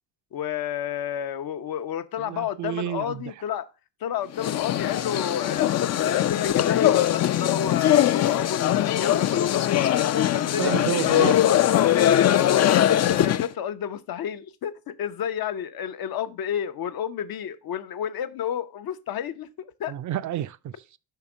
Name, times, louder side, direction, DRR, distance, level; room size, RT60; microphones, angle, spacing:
voice 1, 0.3-3.7 4.0-9.7 10.3-10.8 11.0-19.9, left 9 dB, 60° left, 0.8 m, -31 dB
voice 2, 2.2-3.2 10.6-11.3 19.9-21.0, right 12 dB, 50° right, 0.5 m, -30 dB
sound 1, 4.3-13.5, left 11 dB, 45° left, 0.4 m, -21 dB
5.7 x 3.5 x 4.9 m
cardioid pair, 70°, 39 cm